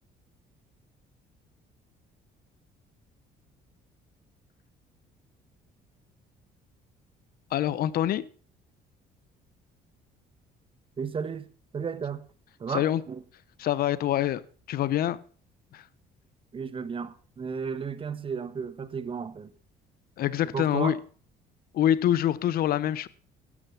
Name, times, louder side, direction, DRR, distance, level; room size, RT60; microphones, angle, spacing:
voice 1, 7.5-8.3 12.7-13.0 13.6-14.4 14.7-15.2 15.7-15.8 20.2-21.0 21.7-23.1, left 11 dB, 60° left, 0.7 m, -25 dB
voice 2, 11.0-11.5 11.7-12.2 12.6-13.2 16.5-19.5 20.5-21.0, right 6 dB, 30° right, 1.1 m, -33 dB
12.5 x 10.5 x 5.8 m
cardioid pair, 110°, 17 cm